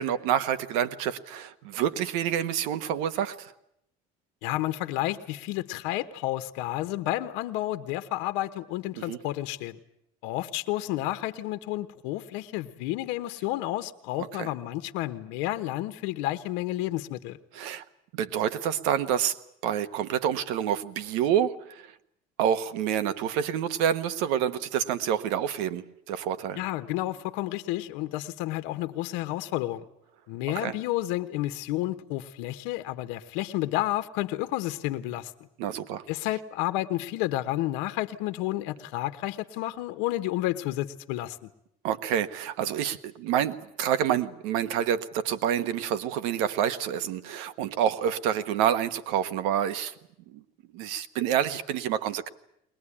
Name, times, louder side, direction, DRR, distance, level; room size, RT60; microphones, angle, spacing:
voice 1, 0.0-3.5 9.1-9.2 14.2-14.5 17.5-17.8 18.1-19.4 19.6-21.9 22.4-26.6 30.5-30.7 35.6-36.0 41.8-49.9 50.3-50.4 50.7-52.3, right 9 dB, 85° right, 11 dB, 1.4 m, -28 dB
voice 2, 4.4-9.8 10.2-17.4 26.6-29.8 30.3-35.3 36.1-41.5, left 15 dB, 75° left, 10 dB, 1.2 m, -31 dB
22.0 x 20.5 x 10.0 m, 0.75 s
cardioid pair, 175°, 19 cm